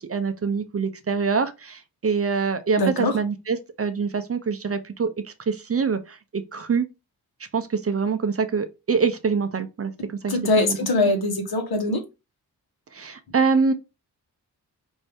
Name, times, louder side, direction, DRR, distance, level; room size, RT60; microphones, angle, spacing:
voice 1, 0.1-5.1 5.5-6.9 7.5-10.8 12.9-13.7, right 5 dB, 35° right, 0.6 m, -25 dB
voice 2, 2.8-3.1 10.3-12.0, left 2 dB, 70° left, 1.3 m, -22 dB
5.2 x 2.7 x 3.4 m
wide cardioid pair, 105°, 39 cm